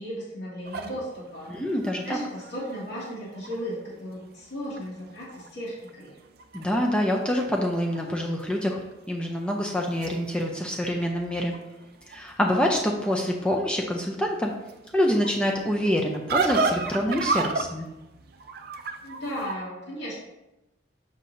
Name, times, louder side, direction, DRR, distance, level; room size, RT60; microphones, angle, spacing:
voice 1, 0.0-1.5 2.0-6.2 19.0-20.2, equal, 60° left, -6 dB, 2.2 m, -35 dB
sound 1, 0.7-3.9 4.4-4.5 4.7-5.5 5.8-8.1 8.4-8.9 9.6-19.5, right 4 dB, 50° right, 0.4 m, -33 dB
voice 2, 1.5-2.0 6.5-8.8 9.1-11.5 12.1-14.5 14.9-17.9, equal, 5° left, 0 dB, 0.5 m, -26 dB
6.6 x 5.5 x 2.6 m, 0.95 s
head